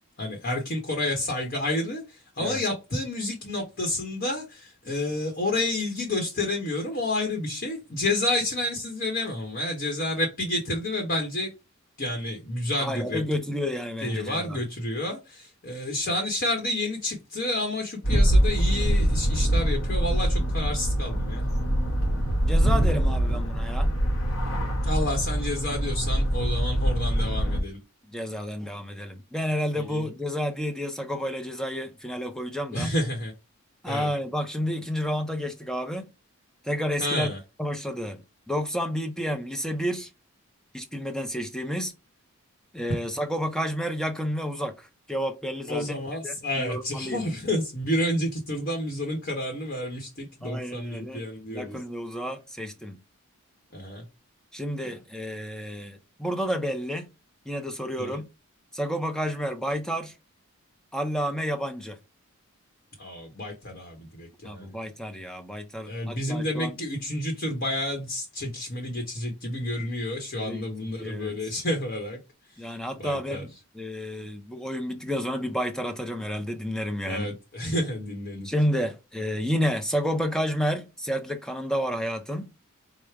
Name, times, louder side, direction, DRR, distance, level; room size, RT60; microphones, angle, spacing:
voice 1, 0.2-11.5 12.0-13.2 14.0-21.4 24.8-27.8 29.8-30.1 32.7-33.3 33.9-34.1 37.0-37.4 45.7-51.8 53.7-54.0 58.0-58.2 63.0-64.7 65.9-72.2 72.5-72.6 73.0-73.4 77.0-78.5, left 1 dB, 45° left, 1.0 m, -30 dB
voice 2, 12.8-14.6 22.4-23.9 28.1-32.9 33.8-36.1 36.6-37.3 37.6-40.1 40.7-41.9 42.7-46.0 46.2-47.3 50.4-53.0 54.5-57.1 57.5-58.3 58.7-60.1 60.9-62.0 64.4-66.8 70.4-70.7 71.0-71.5 72.6-77.3 78.4-82.5, equal, 5° left, 0.5 m, -30 dB
sound 1, 18.0-27.6, equal, 65° left, 1.2 m, -24 dB
4.9 x 2.1 x 4.5 m
head